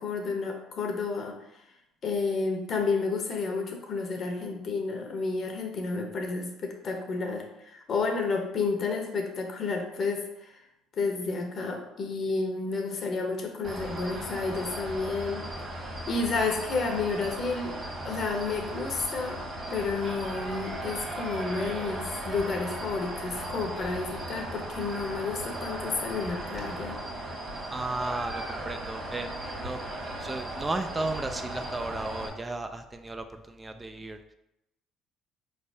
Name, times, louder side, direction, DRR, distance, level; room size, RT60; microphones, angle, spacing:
voice 1, 0.0-1.3 2.0-10.3 11.0-15.4 16.1-17.8 18.0-19.4 19.7-27.0, left 4 dB, 50° left, 3 dB, 0.8 m, -31 dB
sound 1, 13.6-32.3, right 1 dB, 40° right, 1.4 m, -37 dB
voice 2, 27.7-29.8 30.2-34.2, right 2 dB, 20° right, 7 dB, 0.3 m, -34 dB
4.3 x 3.3 x 2.7 m, 0.87 s
hypercardioid pair, 65°, 0 cm